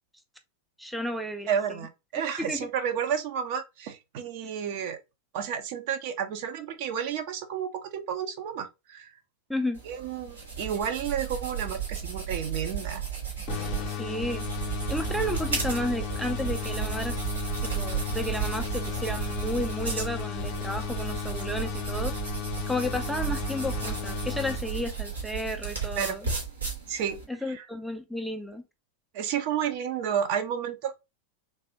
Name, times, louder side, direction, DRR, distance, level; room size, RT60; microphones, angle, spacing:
voice 1, 0.8-1.8 2.4-2.7 9.5-9.8 13.9-17.2 17.8-22.1 22.7-26.3 27.3-28.6, left 1 dB, ahead, 0.4 m, -32 dB
voice 2, 1.5-5.0 5.3-9.1 9.8-13.0 26.0-26.2 26.9-27.2 27.5-27.7 29.1-31.0, right 8 dB, 45° right, 0.7 m, -31 dB
sound 1, 9.7-27.2, right 7 dB, 75° right, 2.1 m, -34 dB
sound 2, 13.5-25.2, left 11 dB, 40° left, 0.7 m, -35 dB
3.3 x 3.3 x 2.8 m
figure-of-eight pair, 90°, 0 cm